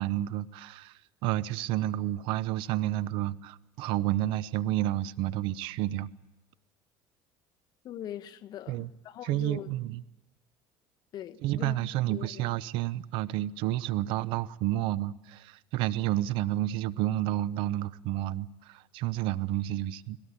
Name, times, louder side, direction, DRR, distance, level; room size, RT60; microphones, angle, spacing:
voice 1, 0.0-6.1 8.7-8.9 9.2-10.0 11.4-20.2, right 14 dB, 75° right, 0.7 m, -30 dB
voice 2, 7.8-9.7 11.1-11.8 12.1-12.5, left 11 dB, 55° left, 1.2 m, -41 dB
19.0 x 17.5 x 9.8 m
cardioid pair, 115°, 9 cm